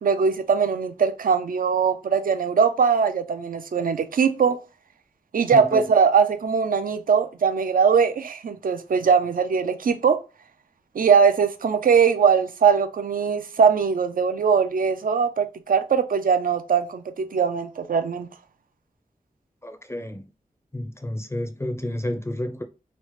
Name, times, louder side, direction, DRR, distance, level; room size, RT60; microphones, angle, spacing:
voice 1, 0.0-4.6 5.3-10.2 11.0-18.3, right 6 dB, 70° right, 0.4 m, -21 dB
voice 2, 19.6-20.2 20.7-22.6, left 1 dB, 20° left, 0.4 m, -30 dB
3.0 x 2.0 x 3.0 m
wide cardioid pair, 65°, 15 cm